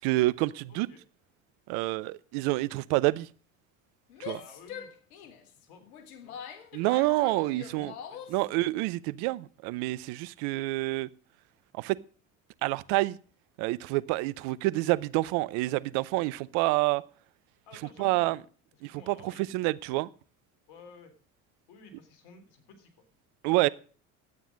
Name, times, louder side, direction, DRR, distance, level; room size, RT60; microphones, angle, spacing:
voice 1, 0.0-0.9 1.7-3.3 4.2-4.4 6.7-7.9 8.3-11.1 11.7-12.0 12.6-13.2 13.6-17.0 18.0-18.4 18.8-20.1 23.4-23.7, right 20 dB, 65° right, 0.7 m, -28 dB
voice 2, 0.7-1.0 4.3-5.9 6.2-6.4 7.5-8.4 17.7-18.4 18.7-19.6 20.7-21.1 21.7-22.9, left 4 dB, 65° left, 3.5 m, -54 dB
Female speech woman speaking / Yell, 4.1-8.5, left 8 dB, 80° left, 1.6 m, -44 dB
12.0 x 9.0 x 6.3 m
hypercardioid pair, 70°, 42 cm